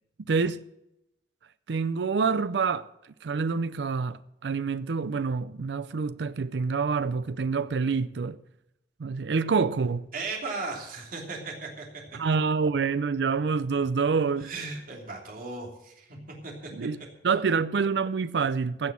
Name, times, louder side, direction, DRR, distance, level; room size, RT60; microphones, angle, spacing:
voice 1, 0.3-0.6 1.7-2.9 3.2-8.4 9.0-10.1 12.1-14.5 16.7-18.9, right 5 dB, 75° right, 0.5 m, -27 dB
voice 2, 10.1-11.9 14.4-16.2 16.4-16.7, right 3 dB, 55° right, 3.1 m, -36 dB
16.0 x 6.2 x 8.4 m
head